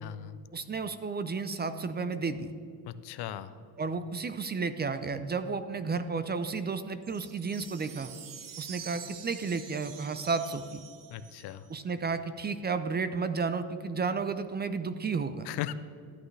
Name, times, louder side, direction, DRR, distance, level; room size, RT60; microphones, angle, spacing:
voice 1, 0.0-0.4 2.9-3.6 11.1-11.7 15.4-15.7, left 12 dB, 70° left, 13 dB, 0.6 m, -37 dB
voice 2, 0.5-2.5 3.8-8.1 8.6-10.8 11.7-15.5, right 4 dB, 25° right, 11 dB, 0.5 m, -32 dB
sound 1, 7.0-11.8, right 8 dB, 50° right, 0.9 m, -47 dB
13.0 x 8.7 x 3.3 m, 2.3 s
cardioid pair, 85°, 41 cm